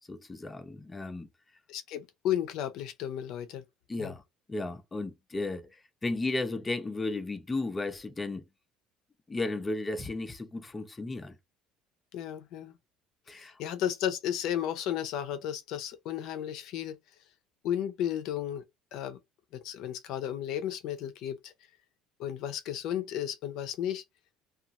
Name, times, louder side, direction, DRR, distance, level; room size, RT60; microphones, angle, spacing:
voice 1, 0.1-1.3 3.9-4.2 4.5-8.4 9.3-11.4 13.3-13.6, left 2 dB, 15° left, 0.4 m, -34 dB
voice 2, 1.7-3.6 4.0-4.2 12.1-12.7 13.4-16.9 17.6-18.6 18.9-19.2 19.5-21.5 22.2-24.0, left 10 dB, 65° left, 0.5 m, -33 dB
2.9 x 2.3 x 2.5 m
cardioid pair, 145°, 0 cm